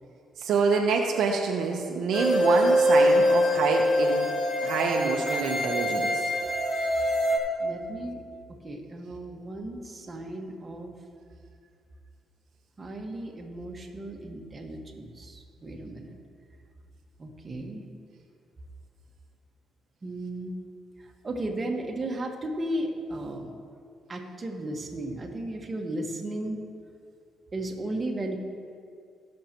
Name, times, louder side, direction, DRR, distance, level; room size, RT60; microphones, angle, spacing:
voice 1, 0.4-4.2 4.6-6.1, right 5 dB, 75° right, 1 dB, 0.9 m, -26 dB
sound 1, 2.1-7.4, equal, 30° left, 2.3 m, -23 dB
voice 2, 7.6-8.2 8.6-10.9 12.8-16.1 17.2-17.8 20.0-20.6 21.0-23.5 24.1-26.6 27.5-28.4, right 1 dB, 30° right, 0 dB, 1.5 m, -35 dB
19.5 x 6.6 x 3.0 m, 2.3 s
cardioid pair, 90°, 0 cm